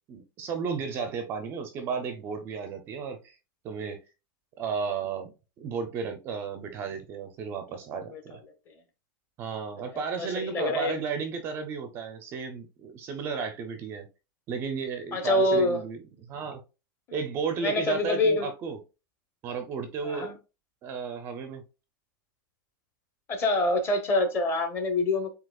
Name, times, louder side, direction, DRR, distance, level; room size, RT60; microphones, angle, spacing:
voice 1, 0.1-3.4 3.6-4.0 4.6-8.4 9.4-14.1 14.5-16.6 17.1-18.8 19.4-20.3 20.8-21.6, right 5 dB, 20° right, 0.5 m, -33 dB
voice 2, 9.8-11.0 15.1-15.8 17.6-18.5 20.0-20.4 23.3-25.3, left 2 dB, 20° left, 0.8 m, -26 dB
7.6 x 2.8 x 2.3 m
supercardioid pair, 175°, 11 cm